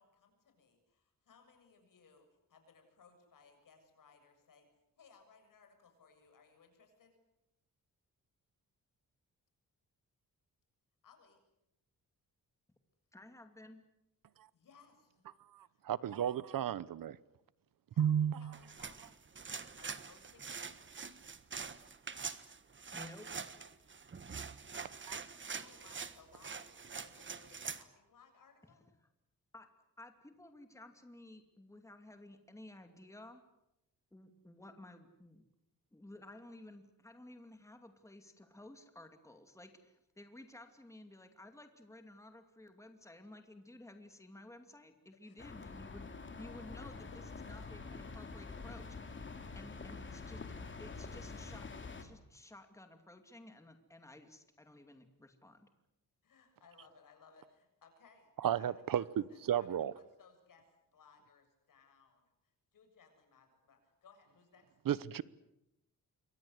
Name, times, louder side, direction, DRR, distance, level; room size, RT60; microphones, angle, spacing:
voice 1, 0.0-4.7 5.0-7.2 11.0-11.4 14.5-15.2 17.9-19.2 19.8-20.7 25.1-28.9 45.2-45.7 56.2-61.4 61.7-62.2 62.7-64.7, left 5 dB, 65° left, 7.5 m, -64 dB
voice 2, 13.1-13.8 22.9-23.4 29.5-29.7 30.0-33.4 34.1-35.4 35.9-46.1 46.4-47.1 47.5-49.2 49.5-50.5 50.8-55.7, left 1 dB, 10° left, 2.6 m, -54 dB
voice 3, 15.9-17.2 18.0-18.5 25.1-25.2 58.4-59.0 59.5-59.9 64.9-65.2, right 10 dB, 70° right, 1.0 m, -32 dB
sound 1, 18.5-27.8, right 5 dB, 35° right, 1.5 m, -45 dB
sound 2, 45.4-52.0, left 4 dB, 35° left, 3.1 m, -46 dB
27.5 x 24.5 x 8.1 m
wide cardioid pair, 135°, 34 cm